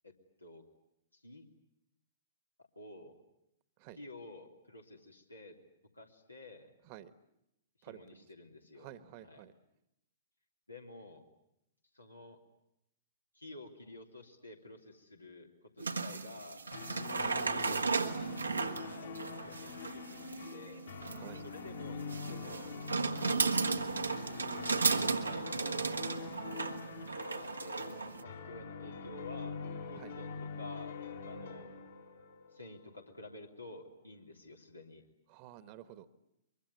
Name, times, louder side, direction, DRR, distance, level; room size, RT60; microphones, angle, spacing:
voice 1, 1.1-1.4 2.7-3.1 3.9-5.6 5.9-6.7 7.8-8.9 9.2-9.4 10.7-11.2 11.9-12.4 13.3-15.5 15.7-16.6 18.7-20.9 21.3-22.7 24.8-25.9 26.9-29.6 29.9-31.7 32.5-35.0, left 2 dB, 90° left, 2 dB, 3.2 m, -51 dB
voice 2, 7.8-8.3 8.8-9.5 17.2-18.4 21.1-21.4 26.5-26.6 30.0-30.2 35.3-36.1, right 12 dB, 40° right, 13 dB, 1.5 m, -51 dB
sound 1, 15.8-28.2, right 4 dB, 80° right, 1.6 m, -35 dB
sound 2, 16.7-33.4, left 4 dB, 65° left, 4.0 m, -44 dB
23.5 x 23.0 x 9.6 m, 0.82 s
figure-of-eight pair, 110°, 0 cm